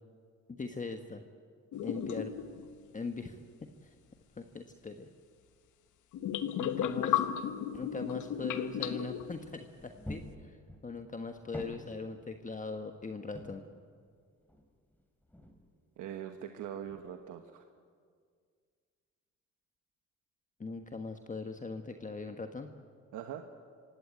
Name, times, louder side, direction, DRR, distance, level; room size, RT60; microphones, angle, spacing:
voice 1, 0.5-1.2 1.8-2.3 2.9-3.4 3.8-3.9 4.4-5.1 6.6-7.2 7.7-10.6 10.8-13.6 20.6-22.7, left 4 dB, 25° left, 6 dB, 1.4 m, -40 dB
sound 1, 1.7-2.7 6.1-9.4, left 10 dB, 80° left, 1.2 m, -34 dB
sound 2, 9.8-11.1 11.3-12.7 13.3-13.8 14.4-15.7 16.3-16.4 16.9-17.4, left 1 dB, 5° left, 3.4 m, -48 dB
voice 2, 16.0-17.6 23.1-23.4, right 10 dB, 85° right, 6 dB, 1.2 m, -42 dB
25.0 x 17.0 x 8.9 m, 2.1 s
cardioid pair, 90°, 30 cm